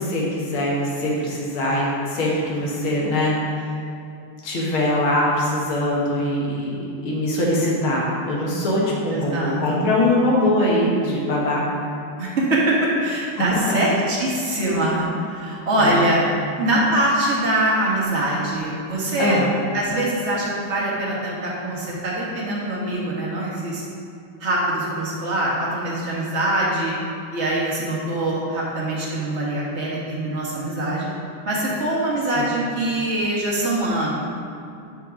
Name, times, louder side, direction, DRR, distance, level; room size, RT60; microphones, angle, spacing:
voice 1, 0.0-3.7 4.4-11.7 13.4-13.8 15.8-16.0 19.2-19.5 32.3-32.5, left 1 dB, 75° left, -4 dB, 2.1 m, -22 dB
voice 2, 9.1-9.6 12.2-16.2 16.6-19.4 19.7-23.8 24.4-26.9 27.3-31.1 31.5-34.1, right 1 dB, 35° right, -5 dB, 1.7 m, -23 dB
12.0 x 4.7 x 3.7 m, 2.5 s
omnidirectional pair, 2.3 m